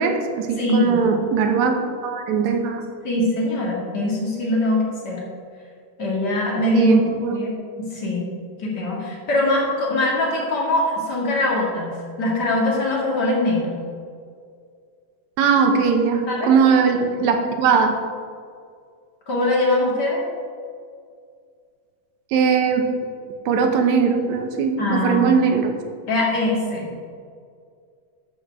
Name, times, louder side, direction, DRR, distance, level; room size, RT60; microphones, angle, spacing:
voice 1, 0.0-2.8 6.7-7.4 15.4-18.0 22.3-22.9 23.5-25.7, right 5 dB, 75° right, 4 dB, 2.1 m, -20 dB
voice 2, 0.6-1.0 3.0-5.2 6.0-7.0 7.3-7.5 7.8-8.3 8.6-13.8 16.3-16.5 19.3-20.2 24.8-25.3 26.1-26.9, left 2 dB, 35° left, -3 dB, 2.3 m, -22 dB
13.0 x 7.0 x 3.5 m, 2.2 s
omnidirectional pair, 3.4 m